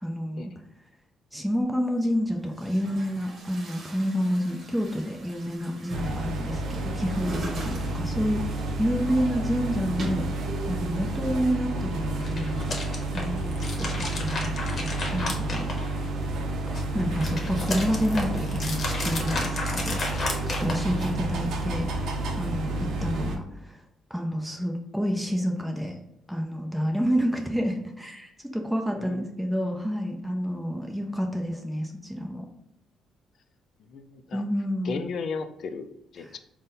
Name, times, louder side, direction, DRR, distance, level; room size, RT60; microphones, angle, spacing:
voice 1, 0.0-0.5 1.3-8.4 8.8-10.3 10.7-12.8 13.1-13.5 13.8-15.7 16.9-23.8 24.1-26.0 26.3-32.5 34.3-35.0 36.2-36.4, equal, ahead, 1 dB, 0.6 m, -29 dB
Chatter / Gurgling / Tap, 1.6-1.7 2.4-11.5, right 1 dB, 50° right, 1.0 m, -42 dB
sound 1, 5.9-23.4, right 2 dB, 75° right, 0.5 m, -30 dB
sound 2, 12.1-16.2 16.6-21.2, left 2 dB, 45° left, 1.0 m, -33 dB
voice 2, 33.9-34.4 34.8-36.4, left 5 dB, 65° left, 8 dB, 0.4 m, -35 dB
4.0 x 2.1 x 3.7 m, 0.83 s
cardioid pair, 90°, 0 cm